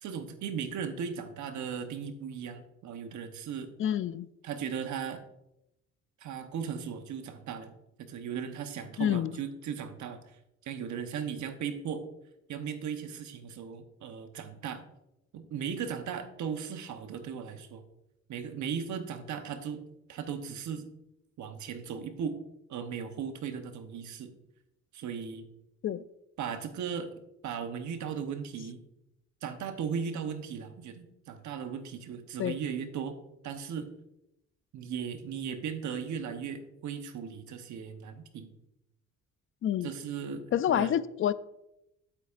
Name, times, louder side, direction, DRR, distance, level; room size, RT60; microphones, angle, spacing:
voice 1, 0.0-3.7 4.4-5.2 6.2-12.0 12.5-14.8 15.3-17.8 18.3-19.8 20.1-20.9 21.4-22.4 22.7-24.3 24.9-25.4 26.4-28.8 29.4-33.2 33.4-33.9 34.7-38.5 39.8-40.9, right 7 dB, 70° right, 8 dB, 1.0 m, -37 dB
voice 2, 3.8-4.3 9.0-9.4 25.8-26.0 32.4-32.6 39.6-39.9 40.5-41.3, left 10 dB, 45° left, 16 dB, 0.4 m, -28 dB
8.3 x 8.3 x 2.5 m, 0.86 s
cardioid pair, 90°, 30 cm